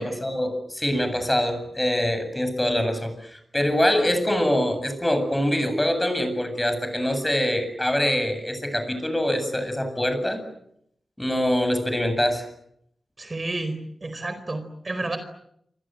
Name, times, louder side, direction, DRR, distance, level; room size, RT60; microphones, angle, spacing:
voice 1, 0.0-10.4 11.2-12.5, left 1 dB, 10° left, 9 dB, 7.8 m, -24 dB
voice 2, 13.2-15.2, right 2 dB, 35° right, 10 dB, 4.6 m, -31 dB
28.5 x 25.5 x 7.8 m, 0.74 s
wide cardioid pair, 85°, 0 cm